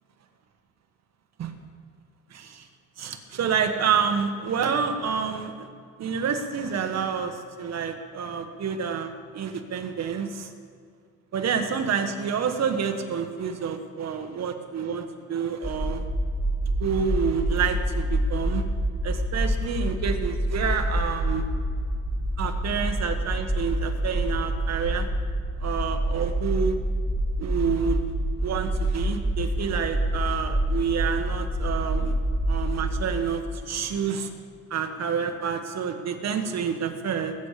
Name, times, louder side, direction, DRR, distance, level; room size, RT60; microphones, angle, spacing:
voice 1, 2.3-2.7 3.0-5.7 6.0-10.5 11.3-16.0 16.8-18.6 19.0-21.4 22.4-25.1 25.6-26.8 27.4-28.0 28.4-32.1 32.5-34.3 34.7-37.3, right 6 dB, 60° right, 6 dB, 1.6 m, -28 dB
sound 1, 15.6-33.0, right 1 dB, 20° right, 2.2 m, -27 dB
20.5 x 8.3 x 5.1 m, 2.2 s
cardioid pair, 90°, 30 cm